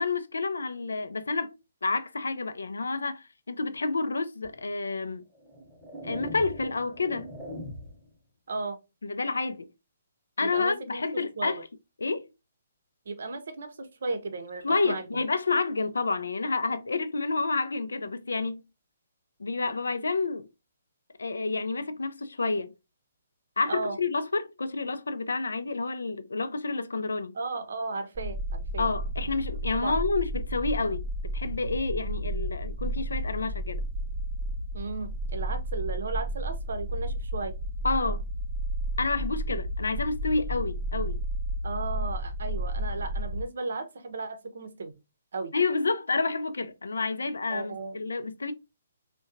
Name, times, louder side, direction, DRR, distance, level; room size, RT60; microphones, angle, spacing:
voice 1, 0.0-1.6 1.8-5.2 6.0-7.3 9.0-9.7 10.4-11.6 12.0-12.3 14.6-18.6 19.4-20.5 21.2-22.7 23.6-27.3 28.8-31.0 31.3-33.9 37.8-38.2 39.0-41.2 45.5-48.5, left 3 dB, 70° left, 0.4 m, -29 dB
sound 1, 4.4-4.6 5.3-8.1, equal, 10° left, 0.9 m, -41 dB
voice 2, 8.5-8.8 10.4-11.6 13.1-15.0 23.7-24.0 27.3-28.9 29.7-30.0 34.7-37.6 41.6-44.9 45.3-45.5 47.5-48.0, right 3 dB, 60° right, 0.6 m, -35 dB
sound 2, 28.2-43.4, right 1 dB, 15° right, 0.4 m, -32 dB
3.6 x 2.2 x 2.6 m
figure-of-eight pair, 130°, 0 cm